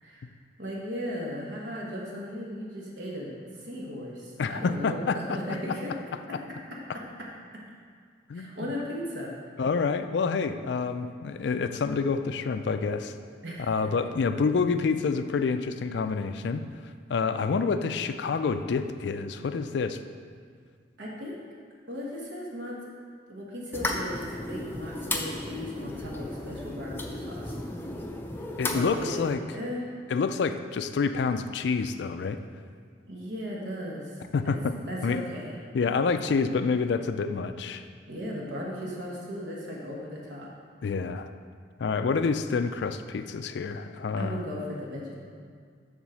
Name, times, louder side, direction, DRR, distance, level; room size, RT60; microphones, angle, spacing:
voice 1, 0.6-5.9 6.3-6.4 6.7-7.3 8.3-9.3 13.4-13.7 21.0-21.4 21.9-22.9 23.3-27.6 28.6-29.2 29.5-29.9 33.1-34.6 34.9-35.5 38.1-40.5 44.2-45.2, equal, 70° right, -3 dB, 1.2 m, -37 dB
voice 2, 4.4-5.4 8.3-8.7 9.6-13.1 13.7-16.6 17.1-20.0 28.6-29.4 30.1-32.4 34.3-34.8 35.0-35.2 35.7-37.8 40.8-41.3 41.8-44.4, left 5 dB, 65° left, 10 dB, 0.4 m, -28 dB
sound 1, 23.7-29.3, left 2 dB, 10° left, 0.5 m, -34 dB
7.2 x 3.7 x 6.2 m, 2.1 s
head